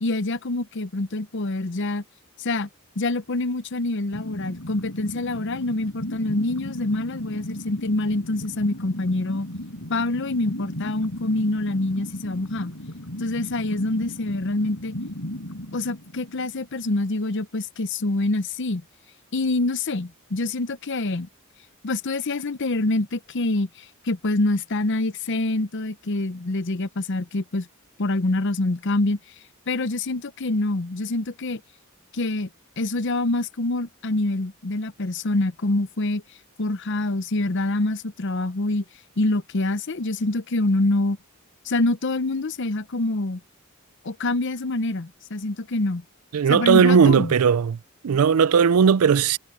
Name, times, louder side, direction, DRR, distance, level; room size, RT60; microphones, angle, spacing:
voice 1, 0.0-2.0 2.4-2.7 3.0-9.5 9.9-12.7 13.2-14.9 15.7-18.8 19.3-21.3 21.8-23.7 24.0-27.7 28.0-29.2 29.7-31.6 32.1-32.5 32.8-36.2 36.6-38.8 39.2-41.2 41.6-43.4 44.0-46.0 46.5-47.3, left 2 dB, 55° left, 0.8 m, -25 dB
sound 1, 4.1-16.8, left 1 dB, 80° left, 5.3 m, -36 dB
voice 2, 46.3-47.8 48.0-49.4, right 6 dB, 90° right, 0.4 m, -17 dB
head